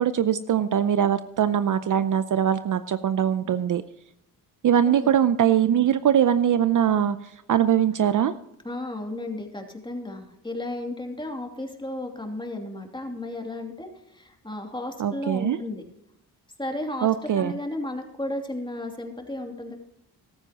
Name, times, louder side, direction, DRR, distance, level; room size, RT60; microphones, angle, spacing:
voice 1, 0.0-3.8 4.6-8.3 15.0-15.6 17.0-17.5, right 9 dB, 55° right, 13 dB, 0.6 m, -22 dB
voice 2, 8.6-15.8 16.6-17.1 17.3-19.8, left 1 dB, 10° left, 2 dB, 2.6 m, -34 dB
14.5 x 12.5 x 3.0 m, 0.82 s
cardioid pair, 70°, 39 cm